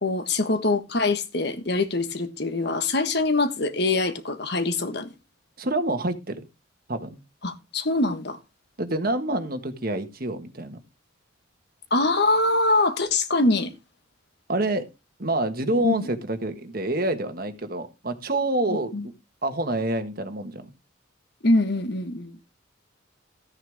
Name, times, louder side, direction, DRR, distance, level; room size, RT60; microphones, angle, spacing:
voice 1, 0.0-5.1 7.4-8.4 11.9-13.7 15.8-16.1 18.9-19.1 21.4-22.4, left 2 dB, 55° left, 1.4 m, -23 dB
voice 2, 5.6-6.1 6.9-7.2 8.8-10.8 14.5-14.8 15.2-19.1 19.4-20.6, right 1 dB, 45° right, 1.6 m, -27 dB
14.0 x 9.8 x 3.6 m
head